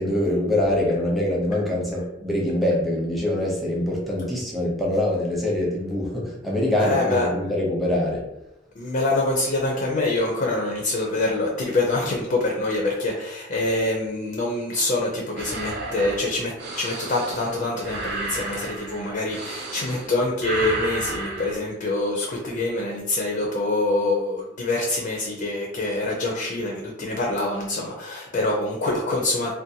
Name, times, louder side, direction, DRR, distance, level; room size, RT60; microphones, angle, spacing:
voice 1, 0.0-8.3, left 1 dB, ahead, -4 dB, 0.6 m, -24 dB
voice 2, 6.8-7.5 8.8-29.5, left 2 dB, 45° left, 0 dB, 0.4 m, -25 dB
sound 1, 15.4-20.1 20.4-21.6, right 2 dB, 60° right, 0.5 m, -32 dB
2.5 x 2.1 x 2.7 m, 0.86 s
head